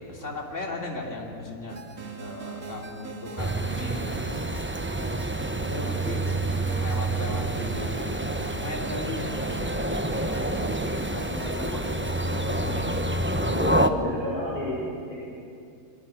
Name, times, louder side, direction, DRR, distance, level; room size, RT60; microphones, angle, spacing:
voice 1, 0.0-1.8 2.2-4.2 4.7-5.1 5.7-6.4 6.8-12.9, left 2 dB, 50° left, 0 dB, 3.8 m, -37 dB
sound 1, 1.7-13.5, right 4 dB, 75° right, 2.8 m, -40 dB
sound 2, 3.4-13.9, right 1 dB, 10° right, 0.8 m, -28 dB
voice 2, 11.3-11.6 13.4-14.8, left 1 dB, 75° left, -6 dB, 7.5 m, -31 dB
27.5 x 23.0 x 7.8 m, 2.4 s
omnidirectional pair, 1.6 m